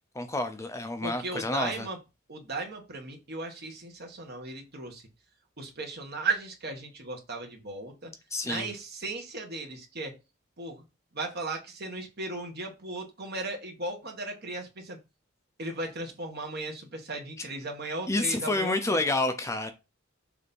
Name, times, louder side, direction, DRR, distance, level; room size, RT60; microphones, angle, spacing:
voice 1, 0.2-1.9 8.3-8.7 17.4-17.5 18.1-19.7, left 2 dB, 15° left, 0.6 m, -29 dB
voice 2, 1.0-2.0 2.3-5.0 5.6-8.1 8.4-10.2 10.6-10.8 11.1-15.0 15.6-19.0, right 3 dB, 55° right, 1.6 m, -36 dB
6.8 x 2.8 x 5.3 m
head